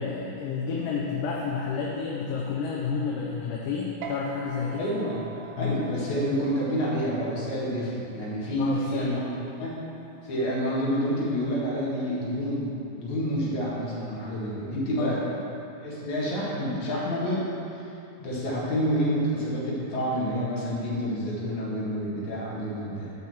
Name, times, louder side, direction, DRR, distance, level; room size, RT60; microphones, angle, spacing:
voice 1, 0.0-4.9 5.6-5.8 8.6-9.2 15.0-15.2, left 5 dB, 80° left, -3 dB, 2.3 m, -30 dB
sound 1, 4.0-10.8, right 5 dB, 75° right, 1.6 m, -46 dB
voice 2, 4.8-9.7 10.2-15.2 15.8-17.5 17.7-17.8 18.2-23.1, equal, 60° left, -7 dB, 3.0 m, -28 dB
6.1 x 5.8 x 7.1 m, 2.7 s
omnidirectional pair, 4.0 m